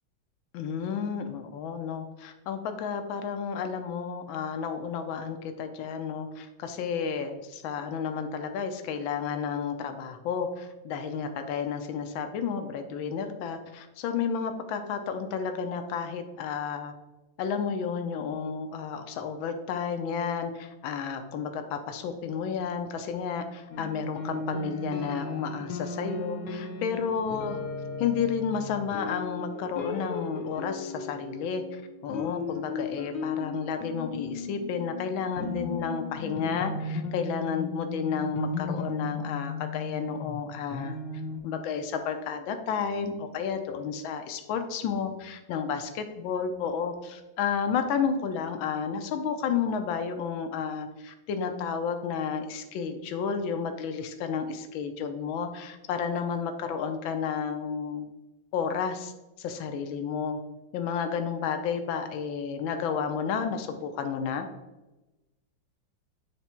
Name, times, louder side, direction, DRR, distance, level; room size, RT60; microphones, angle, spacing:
voice 1, 0.5-16.9 17.4-27.6 28.0-40.9 41.4-58.1 58.5-59.1 59.4-60.4 60.7-64.5, left 6 dB, 80° left, 7 dB, 1.5 m, -31 dB
sound 1, 23.7-41.4, left 3 dB, 60° left, 1.2 m, -36 dB
8.3 x 3.4 x 4.3 m, 1.1 s
omnidirectional pair, 2.2 m